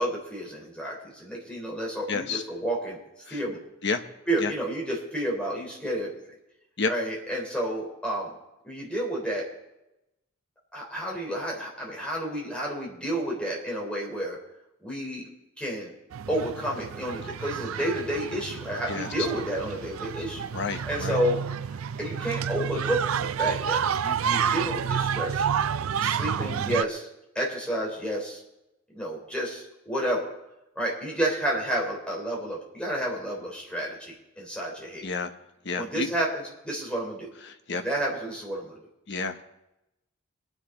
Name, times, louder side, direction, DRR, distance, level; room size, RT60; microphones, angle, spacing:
voice 1, 0.0-3.0 3.3-3.6 4.3-6.1 6.9-8.3 8.6-9.5 10.7-14.4 14.8-15.3 15.6-15.9 16.3-20.5 20.9-25.4 26.0-27.1 27.3-28.4 28.9-30.3 30.8-35.1 35.7-37.3 37.7-38.8, right 1 dB, 5° left, -3 dB, 3.8 m, -30 dB
voice 2, 2.1-2.4 3.3-3.4 3.8-4.0 4.4-4.5 6.8-6.9 18.9-19.1 20.5-21.2 35.0-35.3 35.6-36.1 37.4-37.8 39.1-39.4, left 4 dB, 55° left, 7 dB, 1.0 m, -30 dB
sound 1, 16.1-26.8, right 7 dB, 85° right, 0.4 m, -29 dB
22.0 x 10.0 x 3.9 m, 0.91 s
head